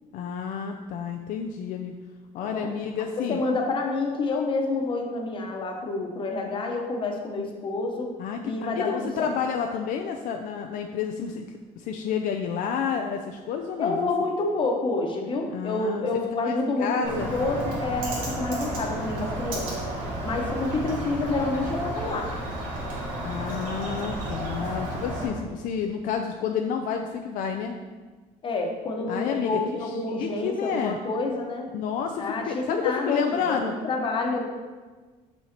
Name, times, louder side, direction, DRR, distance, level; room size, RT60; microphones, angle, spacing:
voice 1, 0.1-1.9 2.3-3.4 8.2-11.5 11.8-14.1 15.5-16.1 16.4-17.3 23.2-27.7 29.1-29.9 30.2-31.0 31.7-33.7, left 7 dB, 65° left, 4 dB, 0.5 m, -30 dB
voice 2, 3.1-8.1 8.4-9.3 13.8-19.7 20.2-22.3 28.4-31.7 32.2-34.4, left 3 dB, 35° left, 2 dB, 1.1 m, -28 dB
Bird, 17.0-25.3, right 1 dB, 75° right, 2.2 m, -32 dB
5.7 x 5.5 x 4.4 m, 1.4 s
cardioid pair, 135°, 15 cm